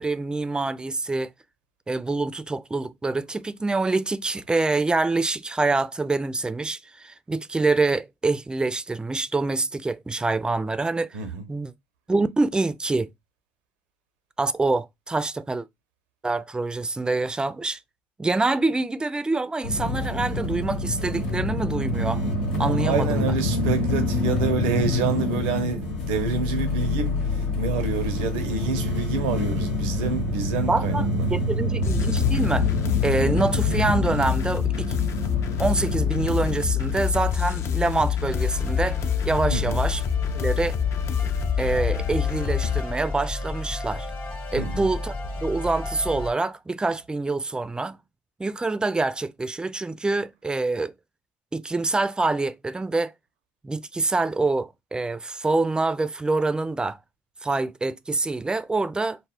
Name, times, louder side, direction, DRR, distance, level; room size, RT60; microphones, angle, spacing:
voice 1, 0.0-1.3 1.9-11.2 11.5-11.7 12.1-13.1 14.4-15.7 16.2-17.8 18.2-22.2 22.6-23.3 30.7-32.7 33.0-34.9 35.6-39.0 39.2-40.0 40.3-40.8 41.6-44.1 44.5-45.2 45.4-48.0 48.4-50.9 51.5-53.1 53.6-57.0 57.4-59.2, right 3 dB, 15° right, 0.3 m, -26 dB
sound 1, 19.6-37.0, left 2 dB, 85° left, 1.0 m, -26 dB
voice 2, 22.5-31.3 39.5-39.7 44.5-44.9, right 5 dB, 80° right, 0.5 m, -28 dB
sound 2, 31.8-42.8, left 9 dB, 55° left, 0.4 m, -26 dB
sound 3, 38.3-46.3, left 2 dB, 40° left, 0.9 m, -32 dB
2.2 x 2.0 x 3.5 m
hypercardioid pair, 65°, 6 cm